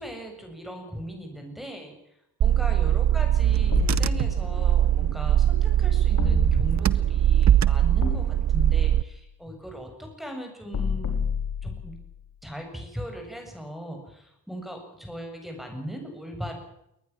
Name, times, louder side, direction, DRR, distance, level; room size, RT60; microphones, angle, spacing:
voice 1, 0.0-2.0 2.4-11.2 11.6-11.9 12.4-16.5, equal, ahead, 3 dB, 7.4 m, -38 dB
Car / Engine, 2.4-9.0, right 11 dB, 40° right, 0.9 m, -21 dB
sound 1, 3.7-4.8 6.2-7.1 8.0-9.1 10.7-12.2, left 4 dB, 45° left, 4.4 m, -30 dB
22.0 x 19.5 x 7.4 m, 0.81 s
figure-of-eight pair, 40°, 43 cm